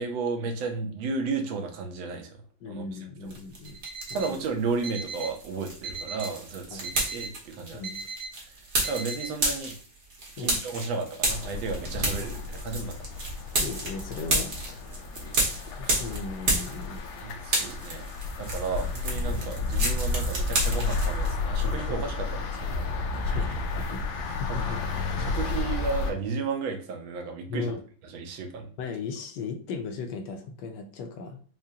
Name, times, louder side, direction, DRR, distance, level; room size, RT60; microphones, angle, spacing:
voice 1, 0.0-2.4 2.7-2.8 3.2-3.3 4.1-7.8 8.8-9.7 10.4-13.0 15.2-15.4 15.8-15.9 17.2-18.1 18.4-23.0 23.2-23.4 24.3-27.7 28.1-28.7, right 4 dB, 85° right, 4 dB, 1.5 m, -33 dB
voice 2, 2.6-3.8 4.1-4.4 6.7-7.0 7.7-8.0 10.4-10.6 12.0-12.4 13.6-14.5 15.8-17.0 23.3-24.0 24.4-24.8 27.5-27.8 28.8-31.4, left 4 dB, 75° left, 5 dB, 1.1 m, -37 dB
sound 1, 3.3-4.5 4.8-17.2 17.4-21.3, right 2 dB, 45° right, 1.1 m, -31 dB
Alarm, 3.6-4.3 4.8-5.4 5.8-6.4 6.8-7.4 7.8-8.3 8.8-9.3, right 4 dB, 70° right, 1.5 m, -38 dB
sound 2, 11.3-26.1, left 3 dB, 90° left, 1.4 m, -31 dB
4.9 x 2.1 x 2.7 m, 0.41 s
omnidirectional pair, 2.1 m